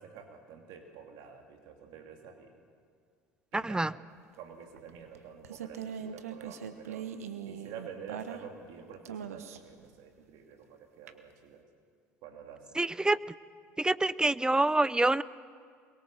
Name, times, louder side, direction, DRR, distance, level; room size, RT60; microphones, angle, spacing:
voice 1, 0.0-2.6 3.5-4.0 4.4-7.1 7.5-11.6 12.2-12.8, right 7 dB, 65° right, 4 dB, 2.7 m, -48 dB
voice 2, 3.5-3.9 12.8-13.2 13.8-15.2, right 2 dB, 10° right, 19 dB, 0.6 m, -26 dB
sound 1, 4.8-8.7 9.1-9.8 11.1-11.2, right 8 dB, 85° right, 1.2 m, -41 dB
23.0 x 22.0 x 7.5 m, 2.1 s
hypercardioid pair, 70°, 8 cm